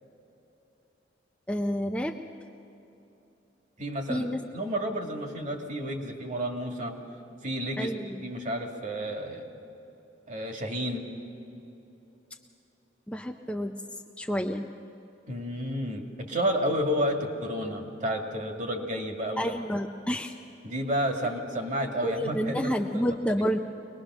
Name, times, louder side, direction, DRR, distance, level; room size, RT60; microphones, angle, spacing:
voice 1, 1.5-2.2 4.1-4.4 7.8-8.2 13.1-13.8 14.2-14.7 19.4-20.3 22.0-23.6, equal, 5° left, 2 dB, 0.6 m, -29 dB
voice 2, 3.8-4.3 4.5-6.9 7.4-7.9 8.2-9.5 10.3-11.0 15.3-19.5 20.6-23.0, equal, 45° right, 2 dB, 2.2 m, -31 dB
24.0 x 20.0 x 6.3 m, 3.0 s
head